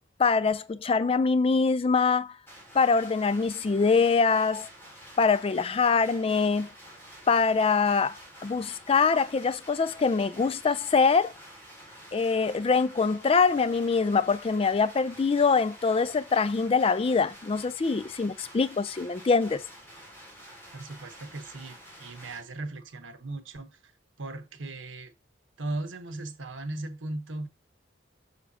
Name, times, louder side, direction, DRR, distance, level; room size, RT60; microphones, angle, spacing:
voice 1, 0.2-2.4 2.7-4.7 5.2-6.7 7.3-11.3 12.1-19.6, left 4 dB, 30° left, 0.3 m, -24 dB
sound 1, 2.5-22.4, equal, 10° left, 3.4 m, -49 dB
voice 2, 20.7-23.8 24.2-25.1 25.6-27.5, right 2 dB, 80° right, 1.2 m, -37 dB
6.9 x 6.2 x 2.8 m
head